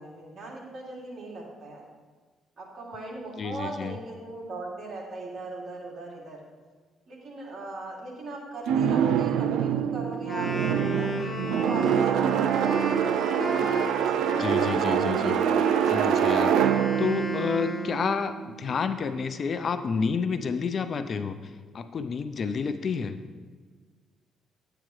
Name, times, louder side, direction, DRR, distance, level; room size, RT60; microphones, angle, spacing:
voice 1, 0.0-1.8 2.6-6.4 7.1-11.1 11.6-14.6, right 2 dB, 50° right, -2 dB, 2.6 m, -39 dB
voice 2, 3.4-3.9 14.4-15.4 15.9-16.5 17.0-23.2, left 5 dB, 50° left, 10 dB, 0.5 m, -30 dB
sound 1, 8.7-18.6, right 9 dB, 85° right, 0.3 m, -25 dB
Wind instrument woodwind instrument, 10.1-18.3, equal, 25° left, 1.6 m, -34 dB
10.5 x 8.8 x 3.2 m, 1.4 s
cardioid pair, 90°, 0 cm